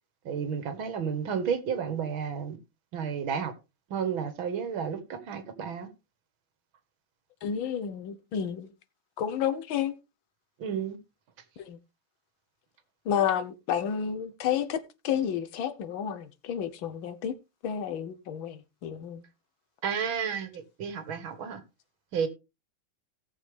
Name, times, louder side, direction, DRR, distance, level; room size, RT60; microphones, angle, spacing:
voice 1, 0.3-2.6 2.9-3.5 3.9-5.9 10.6-11.0 19.8-21.6 22.1-22.3, right 7 dB, 75° right, 2.2 m, -31 dB
voice 2, 7.4-8.7 9.2-10.0 11.6-11.8 13.1-17.3 17.6-19.2, left 8 dB, 75° left, 1.7 m, -31 dB
17.0 x 6.8 x 3.3 m
omnidirectional pair, 2.3 m